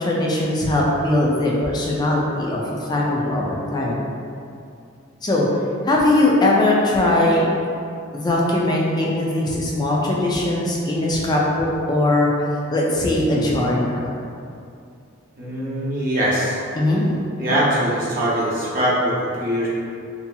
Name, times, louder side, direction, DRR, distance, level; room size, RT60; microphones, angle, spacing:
voice 1, 0.0-4.0 5.2-5.5 5.8-7.4 8.1-12.3 12.7-14.1 16.7-17.1, left 1 dB, 20° left, -4 dB, 0.3 m, -20 dB
voice 2, 13.3-13.8 15.4-16.6 17.4-19.7, equal, 40° right, -8 dB, 0.7 m, -22 dB
2.7 x 2.6 x 2.3 m, 2.5 s
head